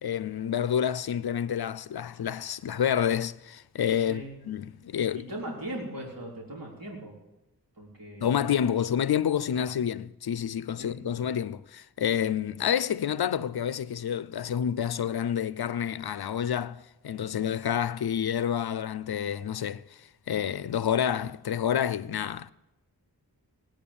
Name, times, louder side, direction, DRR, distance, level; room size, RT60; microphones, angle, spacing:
voice 1, 0.0-5.2 8.2-19.8 20.3-22.5, left 9 dB, 80° left, 0.6 m, -28 dB
voice 2, 5.3-7.1 7.8-8.4 9.5-9.6 10.8-11.0, right 1 dB, 65° right, 3.8 m, -39 dB
19.0 x 9.2 x 7.1 m
wide cardioid pair, 85°, 37 cm